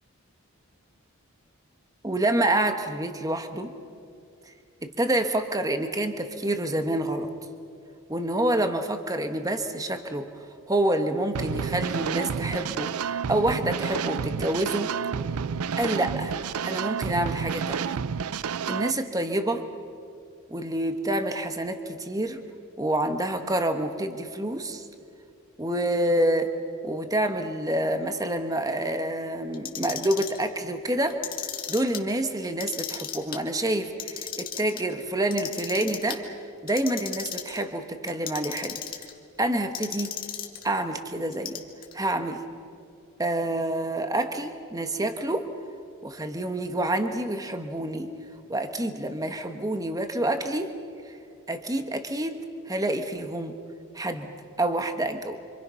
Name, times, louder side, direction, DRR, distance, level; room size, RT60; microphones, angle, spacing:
voice 1, 2.0-3.7 4.8-7.3 8.1-10.2 10.7-14.9 15.8-16.4 16.6-17.9 18.7-19.6 20.5-22.4 22.8-24.9 25.6-26.5 26.8-38.8 39.4-40.2 40.6-41.6 41.9-42.4 43.2-45.5 46.0-48.1 48.5-50.7 51.1-51.2 51.5-53.6 53.9-54.3 54.6-55.4, right 1 dB, 15° right, 7 dB, 1.3 m, -27 dB
sound 1, 11.3-18.9, right 6 dB, 80° right, 0.5 m, -30 dB
Clock, 29.5-30.4 31.1-32.0 32.5-33.4 33.8-34.8 35.3-36.2 36.7-37.6 38.1-39.1 39.7-40.6 41.3-41.9, left 9 dB, 40° left, 1.9 m, -35 dB
27.5 x 26.5 x 5.8 m, 2.4 s
head